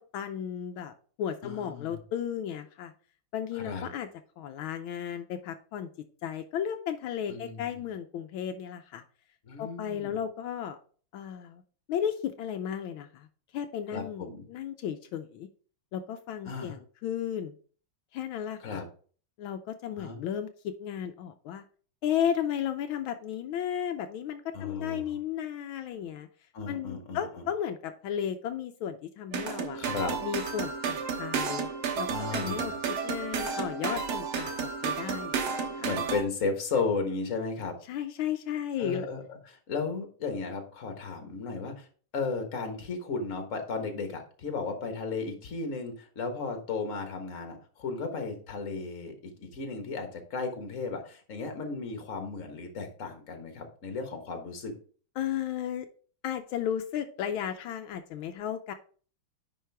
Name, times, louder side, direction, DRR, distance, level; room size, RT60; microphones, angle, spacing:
voice 1, 0.0-2.9 3.3-4.1 4.4-5.9 6.2-9.0 9.6-10.8 11.1-11.6 11.9-13.3 13.5-15.5 15.9-17.6 18.1-18.8 19.4-21.6 22.0-26.3 26.7-29.8 30.2-31.7 32.0-32.7 33.0-35.9 37.9-39.1 55.2-55.9 56.2-58.7, left 9 dB, 80° left, 7 dB, 1.4 m, -34 dB
voice 2, 1.4-2.0 3.5-3.9 7.3-7.7 9.4-10.2 13.9-14.4 16.5-16.7 18.6-18.8 20.0-20.2 24.5-25.1 26.5-27.4 29.7-30.2 32.1-32.8 35.8-37.7 38.8-41.9 42.1-54.7, left 4 dB, 40° left, 5 dB, 1.5 m, -34 dB
sound 1, 29.3-36.2, right 6 dB, 90° right, 2.1 m, -32 dB
10.0 x 4.8 x 3.4 m, 0.43 s
omnidirectional pair, 2.3 m